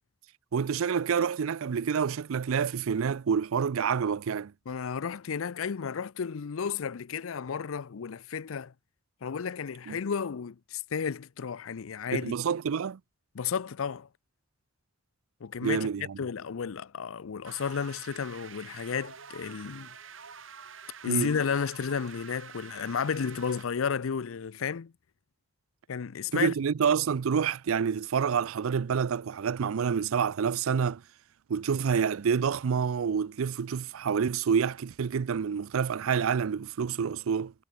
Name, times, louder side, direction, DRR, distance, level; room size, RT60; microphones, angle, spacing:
voice 1, 0.5-4.5 9.9-10.0 12.1-13.0 15.6-16.2 21.1-21.3 26.3-31.0 31.5-37.5, right 6 dB, 90° right, 0.4 m, -28 dB
voice 2, 4.7-8.7 9.2-12.3 13.3-14.1 15.4-15.9 16.2-19.9 21.0-24.9 25.9-26.5, left 6 dB, 85° left, 0.5 m, -32 dB
sound 1, 17.4-23.6, right 7 dB, 75° right, 2.0 m, -47 dB
head